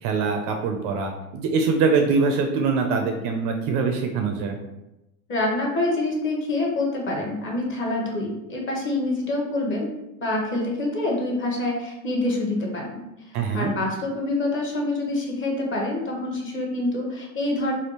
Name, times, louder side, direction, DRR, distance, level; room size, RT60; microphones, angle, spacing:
voice 1, 0.0-4.6 13.3-13.7, right 4 dB, 45° right, 4 dB, 0.4 m, -23 dB
voice 2, 5.3-13.0 13.5-17.7, left 2 dB, 25° left, -1 dB, 0.9 m, -26 dB
3.4 x 2.3 x 2.9 m, 0.94 s
supercardioid pair, 110°, 43 cm